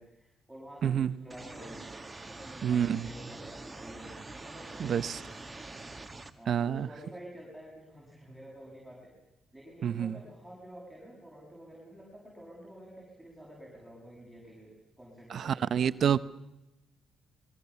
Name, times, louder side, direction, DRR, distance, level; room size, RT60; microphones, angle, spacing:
voice 1, 0.0-1.9 2.3-5.6 6.4-9.1 9.5-15.8, right 1 dB, ahead, 6.9 m, -49 dB
voice 2, 0.8-1.1 2.6-3.1 4.8-5.1 6.5-6.9 9.8-10.1 15.3-16.2, right 8 dB, 60° right, 0.8 m, -28 dB
sound 1, 1.3-6.3, right 2 dB, 15° right, 1.7 m, -45 dB
26.5 x 21.0 x 7.1 m
cardioid pair, 90°, 0 cm